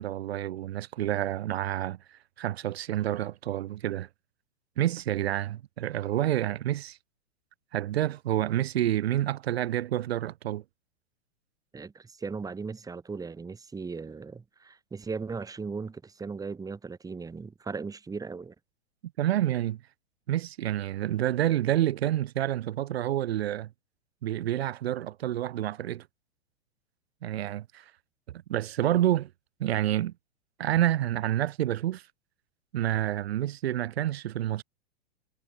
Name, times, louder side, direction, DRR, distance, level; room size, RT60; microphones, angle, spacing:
voice 1, 0.0-4.1 4.8-7.0 7.7-10.6 19.2-19.8 20.3-23.7 24.2-26.1 27.2-27.9 28.3-29.3 29.6-30.1 30.6-32.1 32.7-34.6, right 13 dB, 65° right, 1.5 m, -28 dB
voice 2, 11.7-18.5, right 4 dB, 10° right, 2.4 m, -37 dB
hypercardioid pair, 115°, 33 cm